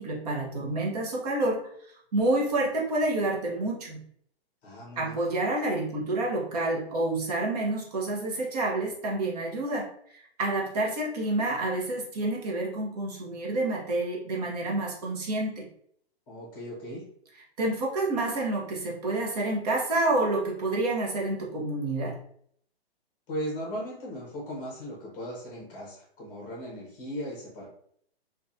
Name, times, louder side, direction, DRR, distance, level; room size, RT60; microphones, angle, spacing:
voice 1, 0.0-1.7 2.1-4.0 5.0-15.7 17.6-22.2, right 2 dB, 40° right, -1 dB, 0.7 m, -28 dB
voice 2, 4.6-5.2 16.3-17.1 23.3-27.7, equal, 20° left, -3 dB, 0.8 m, -37 dB
2.7 x 2.3 x 2.4 m, 0.64 s
hypercardioid pair, 165°, 31 cm